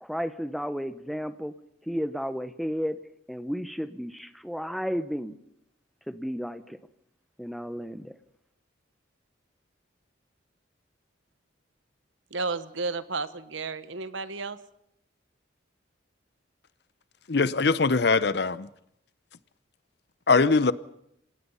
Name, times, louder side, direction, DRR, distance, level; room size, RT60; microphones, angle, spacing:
voice 1, 0.0-1.5 1.9-3.0 3.3-5.4 6.1-6.8 7.4-8.1, equal, ahead, 0.8 m, -33 dB
voice 2, 12.3-14.6, right 3 dB, 80° right, 1.2 m, -32 dB
voice 3, 17.3-18.7 20.3-20.7, left 4 dB, 55° left, 0.7 m, -22 dB
26.0 x 18.0 x 5.6 m
head